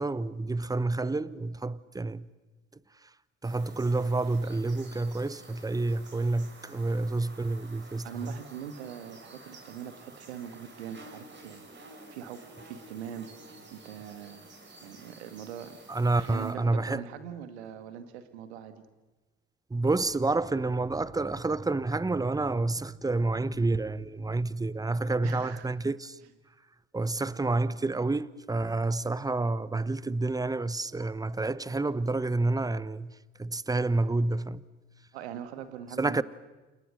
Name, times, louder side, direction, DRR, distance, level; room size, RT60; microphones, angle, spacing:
voice 1, 0.0-2.3 3.4-8.4 15.9-17.0 19.7-26.2 26.9-33.1 33.4-34.6 36.0-36.2, right 2 dB, 10° right, 1.0 m, -29 dB
sound 1, 3.4-16.5, right 2 dB, 35° right, 6.1 m, -51 dB
voice 2, 8.0-13.3 13.7-14.4 14.8-15.8 16.1-18.8 25.2-25.7 35.1-36.2, right 9 dB, 75° right, 1.9 m, -42 dB
29.5 x 28.0 x 6.6 m
figure-of-eight pair, 55°, 33 cm